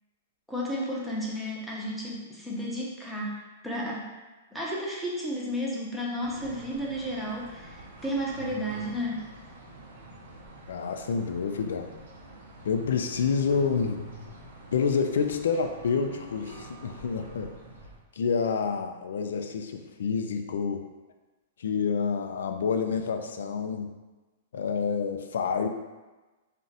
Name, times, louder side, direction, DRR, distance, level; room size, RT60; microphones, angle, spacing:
voice 1, 0.5-4.1 4.5-9.3, equal, ahead, -6 dB, 0.7 m, -33 dB
sound 1, 6.2-18.0, right 1 dB, 75° right, 0.7 m, -47 dB
voice 2, 10.7-11.9 12.6-14.0 14.7-17.5 18.1-20.8 21.6-23.9 24.5-25.7, left 5 dB, 80° left, 6 dB, 0.3 m, -28 dB
2.4 x 2.0 x 3.9 m, 1.2 s
hypercardioid pair, 130°, 0 cm